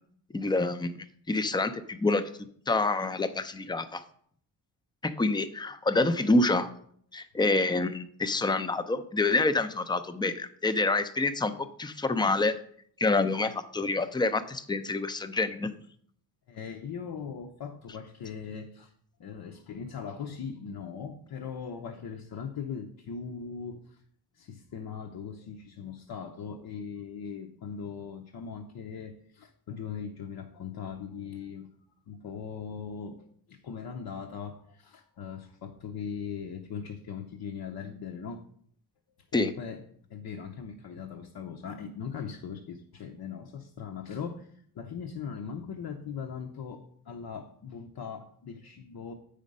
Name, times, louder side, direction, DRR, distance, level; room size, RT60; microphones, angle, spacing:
voice 1, 0.3-2.3 2.7-4.0 5.0-6.7 7.1-12.6 13.0-15.7 39.3-39.5, left 2 dB, 10° left, 11 dB, 0.5 m, -27 dB
voice 2, 16.5-18.9 19.2-24.0 24.4-31.7 32.1-38.4 39.3-39.8 40.1-49.1, left 6 dB, 55° left, 3 dB, 0.8 m, -40 dB
8.3 x 5.1 x 5.4 m, 0.62 s
cardioid pair, 110°, 44 cm